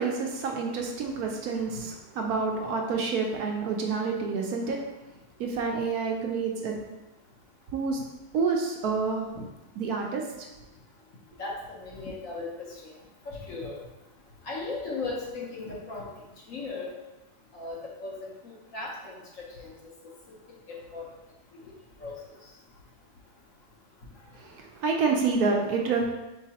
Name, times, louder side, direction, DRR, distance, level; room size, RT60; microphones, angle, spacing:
voice 1, 0.0-4.8 5.4-6.7 7.7-8.0 8.3-9.2 9.8-10.5 24.3-26.1, right 4 dB, 70° right, 1 dB, 1.0 m, -28 dB
voice 2, 11.4-12.5 13.3-13.8 14.4-16.1 16.5-16.9 17.5-19.7 20.7-21.1 22.0-22.1, left 3 dB, 60° left, -3 dB, 1.0 m, -37 dB
4.6 x 4.0 x 2.8 m, 1.0 s
omnidirectional pair, 1.8 m